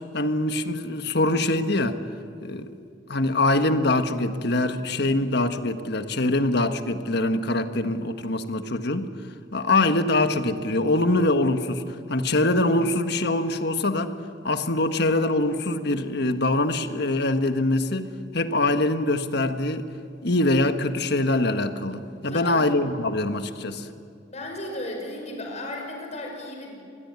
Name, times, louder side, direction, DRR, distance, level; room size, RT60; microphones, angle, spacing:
voice 1, 0.1-2.0 2.4-2.7 3.1-9.1 9.5-14.2 14.4-18.1 18.3-19.8 20.2-23.9, left 2 dB, 60° left, 8 dB, 1.5 m, -23 dB
voice 2, 22.3-22.7 24.3-26.8, left 1 dB, 35° left, 2 dB, 5.6 m, -35 dB
26.0 x 21.5 x 9.6 m, 2.4 s
head